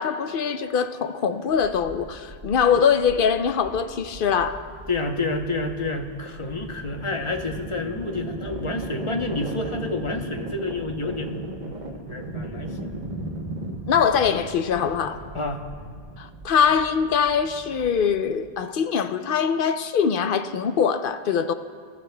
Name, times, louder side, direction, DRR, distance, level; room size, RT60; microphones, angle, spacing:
voice 1, 0.0-4.6 13.9-15.2 16.2-21.5, left 7 dB, 60° left, 0.7 m, -23 dB
sound 1, 1.5-18.5, right 1 dB, 45° right, 1.1 m, -37 dB
voice 2, 4.9-12.9 15.3-15.6, left 2 dB, 30° left, 0.8 m, -29 dB
24.5 x 13.0 x 2.2 m
omnidirectional pair, 1.1 m